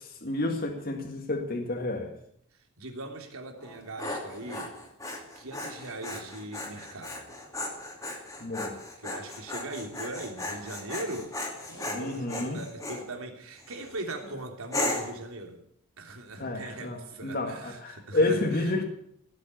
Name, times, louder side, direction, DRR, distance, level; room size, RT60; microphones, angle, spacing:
voice 1, 0.0-2.1 8.4-8.8 11.9-12.6 16.4-18.8, left 2 dB, 45° left, 3 dB, 2.0 m, -30 dB
voice 2, 2.8-4.7 5.3-7.3 9.0-11.3 11.6-15.6 16.0-18.8, right 2 dB, 85° right, 3 dB, 3.2 m, -40 dB
Dog, 3.6-13.0 13.6-14.0 14.7-15.2, left 2 dB, 15° left, 2.7 m, -36 dB
17.5 x 8.0 x 9.8 m, 0.70 s
head